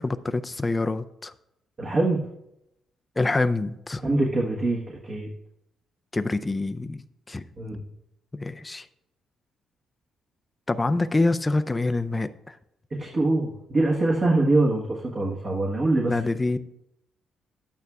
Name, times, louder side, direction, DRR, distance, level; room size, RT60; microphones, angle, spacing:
voice 1, 0.0-1.3 3.2-4.0 6.1-7.0 7.3-7.4 8.3-8.9 10.7-12.6 16.1-16.6, left 2 dB, 20° left, 10 dB, 0.4 m, -26 dB
voice 2, 1.8-2.3 4.0-5.3 7.6-7.8 13.0-16.2, right 2 dB, 40° right, -1 dB, 1.3 m, -24 dB
12.0 x 9.1 x 2.4 m, 0.83 s
cardioid pair, 90°, 0 cm